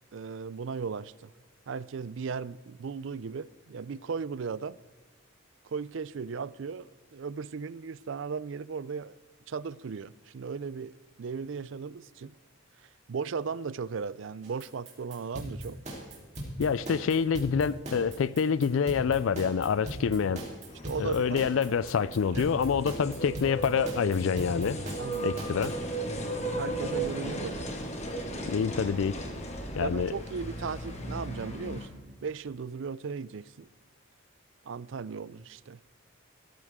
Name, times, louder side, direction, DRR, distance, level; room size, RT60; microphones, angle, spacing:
voice 1, 0.1-1.3 1.7-4.8 5.6-9.2 9.5-12.3 13.1-15.8 20.8-21.4 22.3-22.4 25.0-25.3 26.6-27.7 29.8-33.7 34.7-35.8, right 5 dB, 60° right, 0.4 m, -36 dB
sound 1, 14.4-25.7, right 1 dB, 35° right, 3.5 m, -39 dB
voice 2, 16.6-20.5 21.0-24.8 25.2-25.8 28.5-29.2 29.8-30.1, left 6 dB, 70° left, 0.4 m, -27 dB
sound 2, 20.7-31.9, right 1 dB, 30° left, 1.8 m, -36 dB
17.5 x 13.5 x 3.6 m
head